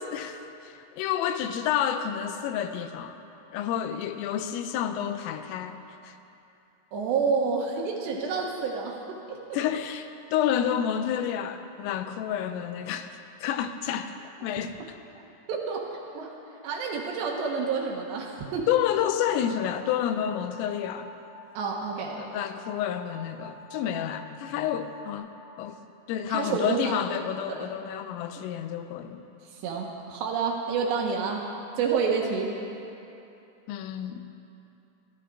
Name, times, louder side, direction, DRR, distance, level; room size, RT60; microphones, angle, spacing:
voice 1, 0.0-3.2 3.5-5.8 6.0-6.2 9.5-13.1 13.4-14.2 14.4-14.7 18.7-21.1 22.2-25.8 26.1-29.2 33.7-34.3, left 9 dB, 85° left, 8 dB, 3.3 m, -29 dB
voice 2, 6.9-9.6 15.5-16.4 16.6-18.7 21.5-22.2 26.3-27.0 27.5-27.7 29.6-31.4 31.8-32.5, right 5 dB, 70° right, 0 dB, 3.0 m, -29 dB
sound 1, 20.1-25.1, left 1 dB, 35° left, 5.8 m, -48 dB
24.0 x 15.0 x 3.7 m, 2.8 s
omnidirectional pair, 5.9 m